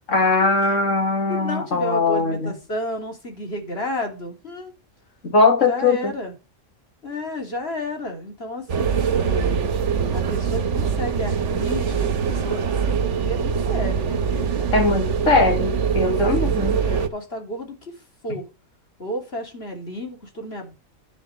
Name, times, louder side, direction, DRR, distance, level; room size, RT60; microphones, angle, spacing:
voice 1, 0.1-2.5 5.2-6.1 14.7-16.8, left 3 dB, 75° left, 2.5 m, -20 dB
voice 2, 1.3-4.7 5.6-6.3 7.0-9.6 10.1-15.1 16.2-17.9 18.2-18.4 19.0-20.7, left 1 dB, 50° left, 3.2 m, -32 dB
sound 1, 8.7-17.1, right 6 dB, 70° right, 1.3 m, -23 dB
10.0 x 4.5 x 7.6 m
omnidirectional pair, 1.3 m